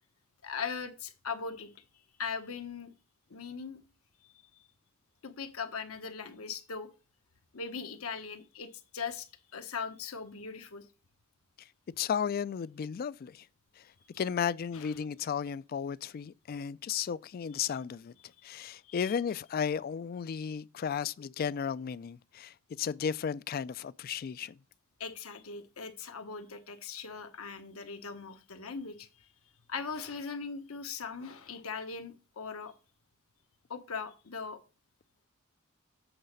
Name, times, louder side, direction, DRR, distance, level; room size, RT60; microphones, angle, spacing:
voice 1, 0.4-1.7 2.2-2.9 3.3-3.8 4.2-4.7 5.2-6.9 7.5-10.8 14.7-14.9 18.8-19.2 25.0-29.1 29.7-32.7 33.7-34.6, left 5 dB, 80° left, 1.1 m, -40 dB
voice 2, 12.0-13.4 14.2-18.1 18.4-24.6, left 7 dB, 45° left, 0.3 m, -34 dB
7.9 x 4.0 x 6.5 m
head